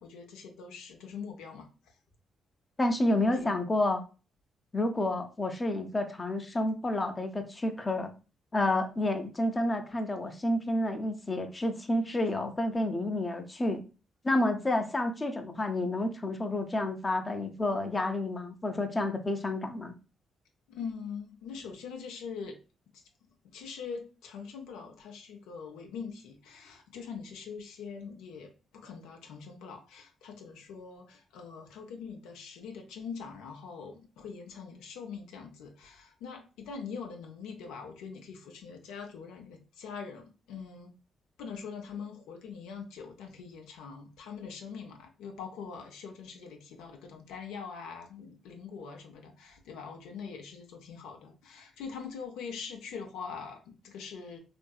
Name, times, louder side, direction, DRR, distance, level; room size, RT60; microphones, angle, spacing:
voice 1, 0.0-1.7 3.3-3.5 20.7-22.6 22.9-23.0 23.5-40.9 41.4-54.4, left 6 dB, 85° left, 4 dB, 0.4 m, -43 dB
voice 2, 2.8-4.0 4.7-8.1 8.5-13.8 14.2-19.9, left 1 dB, 30° left, 5 dB, 0.5 m, -29 dB
2.6 x 2.5 x 2.2 m, 0.33 s
supercardioid pair, 50°, 0 cm